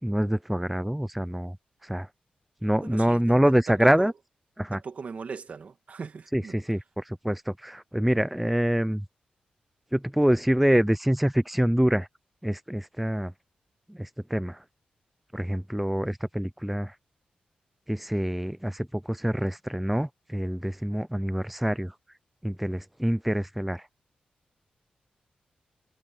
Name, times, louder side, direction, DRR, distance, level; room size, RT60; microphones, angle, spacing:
voice 1, 0.0-1.6 1.8-2.1 2.6-4.1 4.6-4.8 6.3-9.0 9.9-12.1 12.4-13.3 13.9-14.6 15.3-17.0 17.9-21.9 22.4-23.9, equal, 5° right, 0.5 m, -26 dB
voice 2, 2.8-3.4 3.7-4.1 4.7-6.6, right 5 dB, 55° right, 2.0 m, -39 dB
cardioid pair, 90°, 3 cm